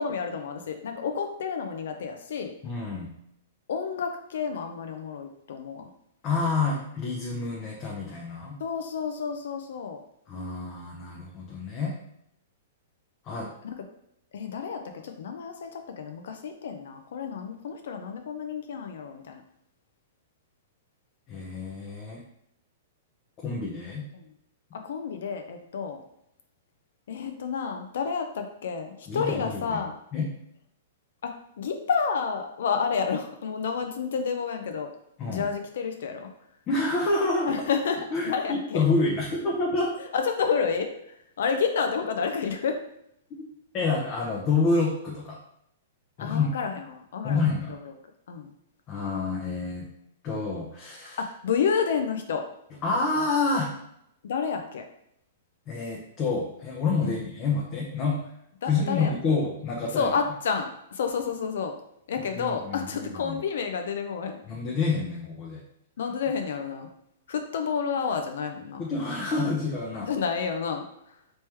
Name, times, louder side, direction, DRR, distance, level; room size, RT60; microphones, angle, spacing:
voice 1, 0.0-2.5 3.7-5.9 8.6-10.0 13.6-13.8 14.3-19.4 24.1-24.3 24.7-26.0 27.1-29.9 31.2-34.9 35.3-36.3 37.5-38.8 40.0-42.8 46.2-47.9 48.3-48.5 51.2-52.5 54.2-54.8 57.0-57.2 58.6-59.1 59.9-61.7 62.1-64.4 66.0-66.9 67.3-68.8 70.0-71.2, left 6 dB, 75° left, 5 dB, 0.4 m, -30 dB
voice 2, 2.6-3.1 6.2-8.6 10.3-12.0 13.2-13.5 21.3-22.2 23.4-24.1 29.1-29.8 30.1-30.3 35.2-35.5 36.7-37.5 38.1-40.0 43.7-45.4 46.2-46.6 47.2-47.7 48.9-49.9 50.2-51.2 52.8-53.7 55.7-58.2 58.7-60.1 62.4-63.4 64.5-65.6 68.8-70.1, left 3 dB, 25° left, -2 dB, 0.6 m, -28 dB
3.1 x 3.0 x 3.3 m, 0.75 s
hypercardioid pair, 155°, 0 cm